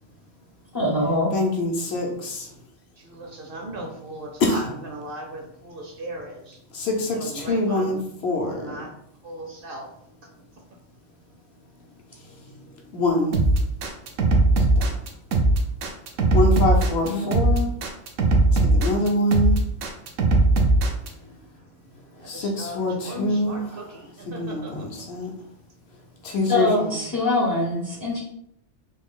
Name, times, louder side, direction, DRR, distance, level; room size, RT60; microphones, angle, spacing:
voice 1, 0.7-1.3 17.0-17.3 26.5-28.2, left 2 dB, 30° left, -3 dB, 0.3 m, -23 dB
voice 2, 1.3-2.5 4.4-4.6 6.7-8.0 8.2-8.8 12.9-13.5 16.3-17.7 18.5-19.6 21.2-21.4 22.3-23.6 24.3-25.3 26.2-27.0, left 2 dB, 65° left, 1 dB, 0.9 m, -24 dB
voice 3, 3.0-6.6 7.0-8.0 8.4-8.9 9.2-9.9 22.2-24.9, right 1 dB, 60° right, 1 dB, 0.7 m, -37 dB
sound 1, 13.3-21.1, right 2 dB, 90° right, 0.9 m, -19 dB
3.3 x 2.3 x 3.6 m, 0.72 s
omnidirectional pair, 1.3 m